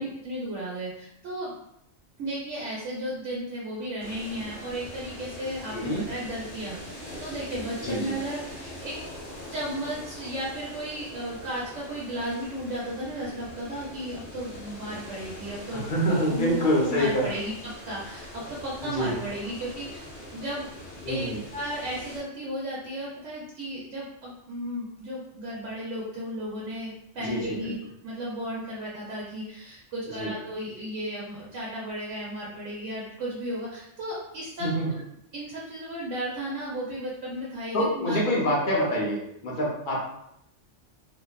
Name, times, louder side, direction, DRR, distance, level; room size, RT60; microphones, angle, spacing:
voice 1, 0.0-1.6 2.2-6.8 7.2-8.9 9.5-15.9 16.3-20.1 20.3-20.7 21.1-21.2 21.5-27.8 28.0-34.7 35.3-38.7, right 1 dB, 80° right, -6 dB, 1.0 m, -34 dB
sound 1, 4.0-22.2, left 1 dB, 90° left, 1.1 m, -42 dB
voice 2, 5.7-6.0 7.8-8.2 15.9-17.3 18.8-19.2 21.0-21.4 27.2-27.7 30.2-30.3 34.6-34.9 37.7-40.1, equal, 50° left, -5 dB, 0.7 m, -26 dB
2.7 x 2.1 x 2.2 m, 0.77 s
omnidirectional pair, 1.3 m